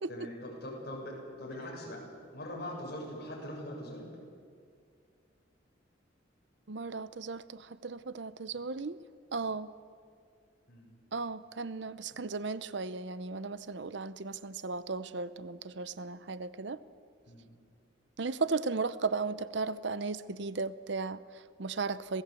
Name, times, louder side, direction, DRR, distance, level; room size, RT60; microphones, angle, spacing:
voice 1, 0.1-2.0 2.3-4.1 10.7-10.9 17.3-17.5, left 1 dB, 55° left, -2 dB, 7.5 m, -42 dB
voice 2, 6.7-9.0 9.3-9.7 11.1-16.8 18.2-22.2, right 4 dB, 65° right, 15 dB, 0.7 m, -36 dB
26.5 x 17.5 x 8.4 m, 2.2 s
head